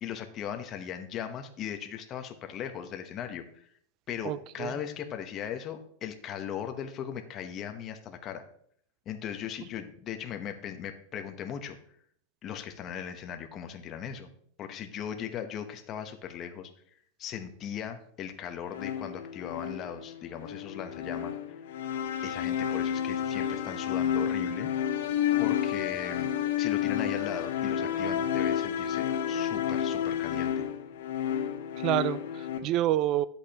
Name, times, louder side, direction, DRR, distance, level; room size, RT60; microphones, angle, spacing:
voice 1, 0.0-3.6 4.1-8.4 9.1-11.8 12.4-14.3 14.6-16.7 17.2-21.3 22.2-24.7 25.4-26.3 26.6-30.6, left 9 dB, 25° left, 7 dB, 0.8 m, -38 dB
voice 2, 4.2-4.7 31.7-33.3, right 13 dB, 35° right, 18 dB, 0.3 m, -28 dB
sound 1, 18.7-32.6, left 9 dB, 70° left, 1.0 m, -30 dB
10.5 x 8.1 x 2.9 m, 0.64 s
supercardioid pair, 165°, 0 cm